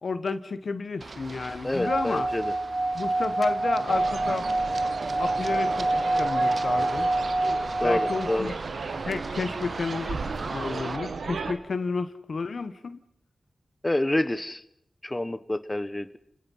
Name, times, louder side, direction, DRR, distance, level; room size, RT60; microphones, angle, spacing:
voice 1, 0.0-2.3 2.9-4.5 5.2-5.9 6.2-7.1 7.8-8.5 9.0-10.2 10.4-13.0, left 4 dB, 70° left, 11 dB, 1.4 m, -31 dB
Run, 1.0-11.0, right 3 dB, 60° right, 1.0 m, -39 dB
voice 2, 1.6-2.5 7.8-8.5 13.8-14.6 15.0-16.2, left 1 dB, 20° left, 12 dB, 1.3 m, -28 dB
Singing / Glass, 1.8-8.4, right 2 dB, 35° right, 2.6 m, -26 dB
sound 1, 3.9-11.5, right 4 dB, 90° right, 1.8 m, -35 dB
29.5 x 22.0 x 5.7 m, 0.76 s
cardioid pair, 55°, 0 cm